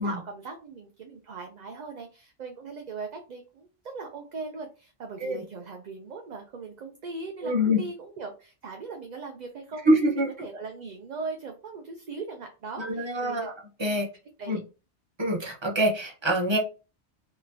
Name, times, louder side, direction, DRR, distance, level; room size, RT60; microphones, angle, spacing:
voice 1, 0.0-3.7 3.9-13.5 14.4-14.6, right 4 dB, 50° right, 4 dB, 0.6 m, -39 dB
voice 2, 7.4-7.8 9.8-10.3 12.8-13.5 13.8-14.1 14.5-14.6 15.2-16.6, equal, 25° right, 0 dB, 1.1 m, -25 dB
4.0 x 3.2 x 2.7 m, 0.33 s
omnidirectional pair, 1.1 m